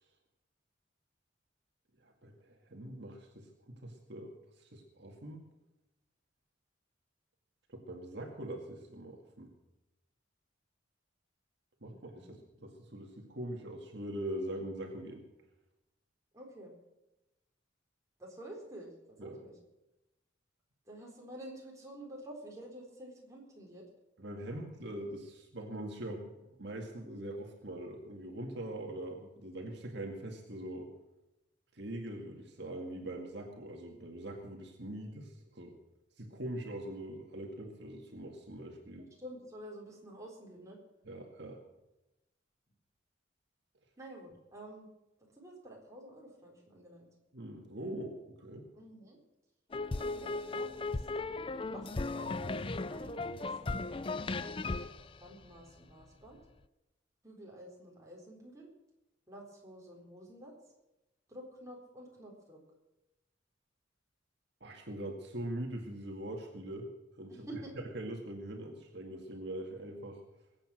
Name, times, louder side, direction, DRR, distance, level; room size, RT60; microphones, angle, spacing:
voice 1, 2.0-5.4 7.7-9.5 11.8-12.3 12.6-15.3 19.2-19.4 24.2-30.9 31.7-35.7 36.2-39.1 41.1-41.6 47.3-48.7 64.6-66.9 67.2-67.5 67.9-70.2, right 1 dB, 60° right, 2 dB, 2.1 m, -42 dB
voice 2, 11.9-12.4 16.3-16.7 18.2-18.9 19.2-19.5 20.9-23.8 24.5-24.7 39.2-40.8 44.0-44.9 45.4-47.1 48.7-49.2 50.0-51.1 51.7-52.6 52.9-53.9 55.2-56.4 57.2-58.7 59.3-60.5 61.3-62.6 67.3-67.7, right 1 dB, 15° right, -2 dB, 4.0 m, -49 dB
sound 1, 49.7-56.0, left 3 dB, 30° left, 0.5 m, -36 dB
21.5 x 8.7 x 6.4 m, 0.96 s
head